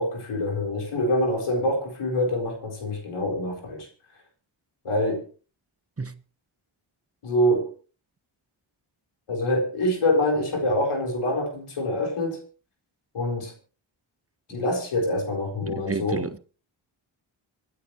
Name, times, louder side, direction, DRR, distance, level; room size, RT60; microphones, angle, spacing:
voice 1, 0.0-3.9 4.8-5.3 7.2-7.7 9.3-12.4 13.1-13.5 14.5-16.3, left 1 dB, 85° left, 4.3 m, -25 dB
voice 2, 15.6-16.4, right 4 dB, 30° right, 1.2 m, -31 dB
26.5 x 9.7 x 3.3 m
cardioid pair, 40°, 49 cm